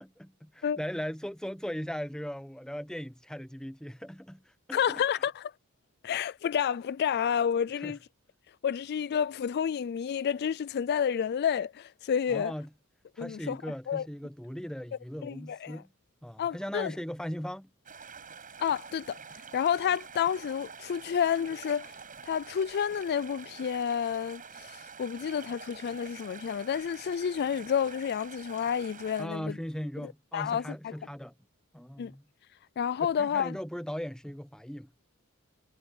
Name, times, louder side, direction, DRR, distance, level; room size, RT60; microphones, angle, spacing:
voice 1, 0.0-4.8 7.8-8.0 12.3-12.7 13.2-15.9 16.2-17.7 29.2-31.3 31.7-32.2 33.2-34.9, equal, 5° left, 0.9 m, -38 dB
voice 2, 4.7-5.5 6.0-8.0 8.6-12.5 13.2-13.6 13.9-14.0 15.2-15.8 16.4-16.9 18.6-19.2 19.5-21.9 22.2-29.5 30.0-30.9 32.0-32.1 32.8-33.5, left 8 dB, 45° left, 0.3 m, -30 dB
sound 1, 17.9-29.3, right 6 dB, 40° right, 7.5 m, -47 dB
head